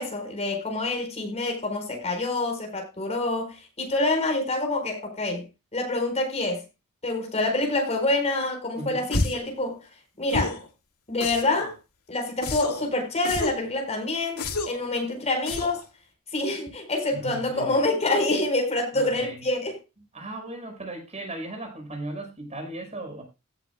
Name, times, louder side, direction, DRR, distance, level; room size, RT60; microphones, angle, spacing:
voice 1, 0.0-5.5 5.7-6.6 7.0-9.8 10.2-10.6 11.1-11.7 12.1-15.8 16.3-19.8, left 2 dB, 30° left, 4.4 m, -26 dB
voice 2, 8.8-9.1 17.1-17.8 19.1-19.4 20.1-23.2, right 2 dB, 30° right, 5.3 m, -37 dB
sound 1, 9.1-9.5 10.3-10.7 11.2-11.7 12.4-12.9 13.2-13.7 14.4-14.9 15.5-15.8, left 2 dB, 85° left, 2.4 m, -29 dB
17.0 x 8.2 x 2.2 m
head